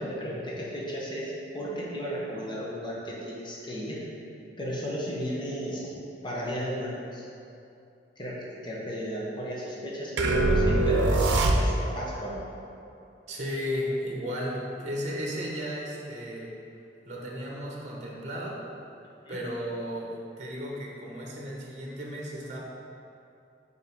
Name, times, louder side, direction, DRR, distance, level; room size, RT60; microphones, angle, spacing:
voice 1, 0.0-4.0 4.6-5.9 6.2-7.3 8.2-12.4 19.2-19.4, equal, 25° left, -5 dB, 1.1 m, -34 dB
sound 1, 10.2-12.1, right 2 dB, 85° right, 0.6 m, -23 dB
voice 2, 13.3-16.5 17.1-18.6 19.3-22.6, equal, 40° right, -3 dB, 1.1 m, -34 dB
5.2 x 4.9 x 5.4 m, 2.6 s
head